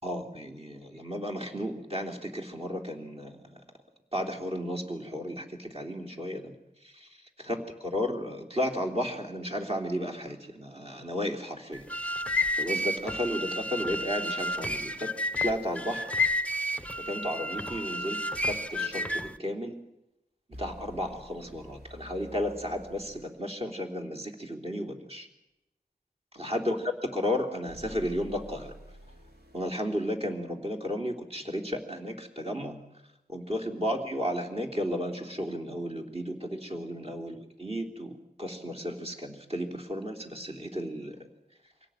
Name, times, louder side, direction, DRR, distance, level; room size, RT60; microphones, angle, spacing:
voice 1, 0.0-3.6 4.1-6.5 6.8-7.1 7.4-11.8 12.6-15.1 15.4-16.1 17.1-19.8 20.6-25.3 26.3-28.7 29.5-32.8 33.3-41.2, equal, 40° right, 1 dB, 3.5 m, -33 dB
sound 1, 11.7-19.4, left 1 dB, 10° left, 0.8 m, -31 dB
sound 2, 20.5-23.4 27.7-29.7, equal, 75° right, 3.6 m, -48 dB
24.0 x 17.5 x 9.1 m, 0.92 s
wide cardioid pair, 65°, 16 cm